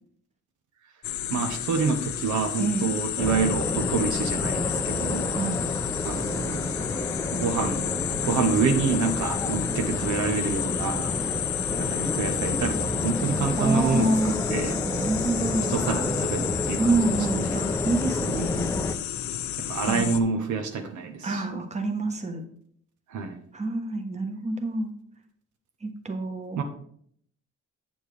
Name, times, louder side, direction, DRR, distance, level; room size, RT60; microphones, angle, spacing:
sound 1, 1.0-20.2, left 11 dB, 70° left, 0.6 m, -32 dB
voice 1, 1.3-5.3 6.0-6.9 7.2-11.1 11.8-14.8 15.7-17.6 19.6-21.6 23.1-23.3 26.6-26.7, right 5 dB, 75° right, 5 dB, 1.0 m, -28 dB
voice 2, 2.6-2.9 5.3-5.6 13.6-14.3 14.9-15.8 16.5-18.7 19.9-20.1 21.2-22.4 23.5-24.9 25.8-26.6, right 2 dB, 20° right, 5 dB, 1.2 m, -27 dB
sound 2, 3.2-19.0, left 2 dB, 10° left, 0.6 m, -30 dB
8.0 x 7.1 x 3.4 m, 0.64 s
cardioid pair, 90°, 30 cm